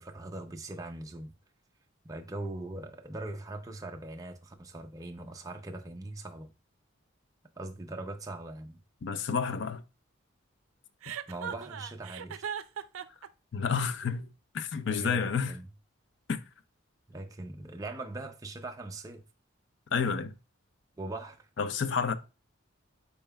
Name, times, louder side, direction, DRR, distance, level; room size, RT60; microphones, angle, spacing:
voice 1, 0.0-1.3 2.0-6.5 7.6-8.8 11.3-12.4 14.9-15.7 17.1-19.2 21.0-21.5, right 2 dB, 15° right, 0.5 m, -41 dB
voice 2, 9.0-9.8 13.5-14.2 14.5-15.5 16.3-16.4 19.9-20.3 21.6-22.1, left 5 dB, 60° left, 0.4 m, -30 dB
Chuckle chortle, 11.0-13.3, right 8 dB, 85° right, 0.4 m, -38 dB
5.4 x 4.4 x 2.2 m
head